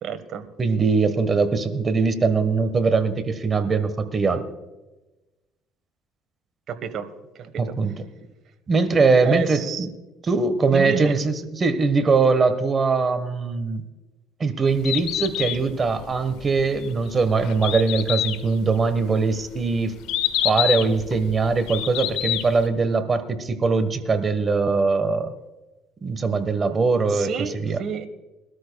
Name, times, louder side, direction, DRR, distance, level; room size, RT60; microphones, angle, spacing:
voice 1, 0.0-0.5 6.7-7.1 7.4-7.7 9.2-9.9 10.7-11.1 27.1-28.1, right 7 dB, 55° right, 10 dB, 1.3 m, -30 dB
voice 2, 0.6-4.4 7.6-8.0 8.7-9.9 10.2-13.8 14.4-20.0 20.4-25.3 26.0-27.8, right 4 dB, 30° right, 10 dB, 1.3 m, -21 dB
Bird, 14.7-22.7, left 12 dB, 75° left, 1.2 m, -28 dB
22.0 x 13.0 x 2.3 m, 1.1 s
cardioid pair, 100°, 0 cm